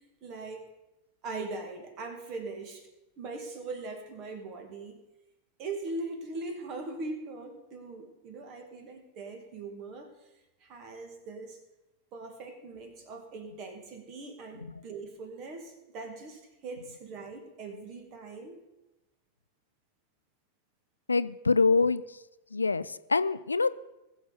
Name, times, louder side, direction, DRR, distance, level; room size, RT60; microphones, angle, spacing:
voice 1, 0.2-0.6 1.2-2.9 3.2-5.0 5.6-10.3 10.6-11.6 12.1-18.6, right 3 dB, 40° right, 5 dB, 2.2 m, -41 dB
voice 2, 21.1-22.0 22.5-23.8, left 4 dB, 80° left, 16 dB, 0.3 m, -25 dB
20.0 x 7.0 x 4.1 m, 0.98 s
figure-of-eight pair, 90°, 0 cm